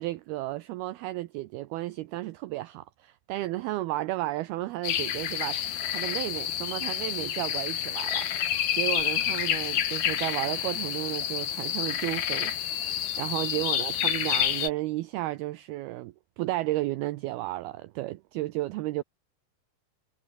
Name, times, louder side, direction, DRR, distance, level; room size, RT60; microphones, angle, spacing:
voice 1, 0.0-19.0, right 17 dB, 75° right, 2.4 m, -33 dB
sound 1, 4.8-14.7, left 10 dB, 60° left, 3.6 m, -29 dB
omnidirectional pair, 5.1 m